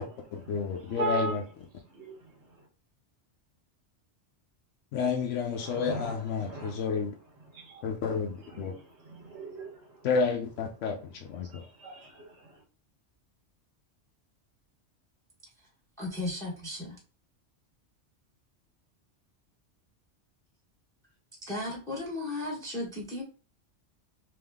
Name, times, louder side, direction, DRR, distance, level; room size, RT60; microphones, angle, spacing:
voice 1, 0.3-1.4 4.9-7.1 7.8-8.7 10.0-11.6, left 5 dB, 80° left, 1.0 m, -30 dB
voice 2, 0.9-1.4 1.9-2.1 5.5-6.8 7.5-7.8 8.5-9.7 11.5-12.3, right 3 dB, 65° right, 1.4 m, -37 dB
voice 3, 16.0-17.0 21.5-23.2, left 2 dB, 5° left, 1.2 m, -35 dB
3.5 x 3.2 x 3.5 m
omnidirectional pair, 1.2 m